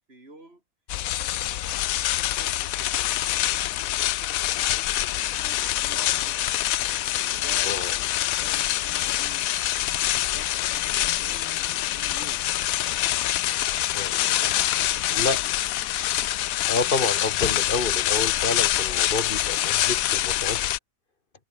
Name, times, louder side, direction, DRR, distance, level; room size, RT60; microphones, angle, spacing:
voice 1, 0.1-0.6 1.4-6.4 7.2-9.7 10.2-12.5 14.1-15.7, right 2 dB, 40° right, 5.7 m, -48 dB
sound 1, 0.9-20.8, left 14 dB, 75° left, 1.0 m, -25 dB
voice 2, 7.6-7.9 13.9-14.1 15.2-15.4 16.7-20.6, left 3 dB, 35° left, 2.0 m, -29 dB
omnidirectional pair, 1.6 m